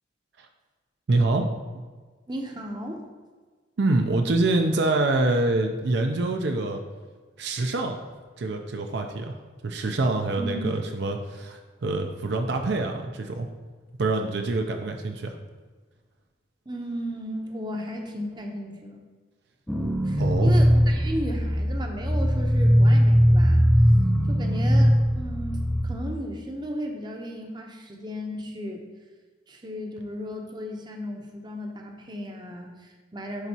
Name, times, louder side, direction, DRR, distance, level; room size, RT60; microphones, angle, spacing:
voice 1, 1.1-1.5 3.8-6.8 7.4-8.0 8.4-9.4 9.6-13.5 14.0-15.4 20.2-20.6, right 2 dB, 60° right, 4 dB, 0.5 m, -25 dB
voice 2, 2.3-3.0 10.4-10.7 16.7-19.0 20.0-23.7 24.3-28.8 29.5-33.5, equal, 25° right, 3 dB, 0.7 m, -35 dB
sound 1, 19.7-25.9, equal, ahead, 0.3 m, -20 dB
10.5 x 4.0 x 2.8 m, 1.4 s
head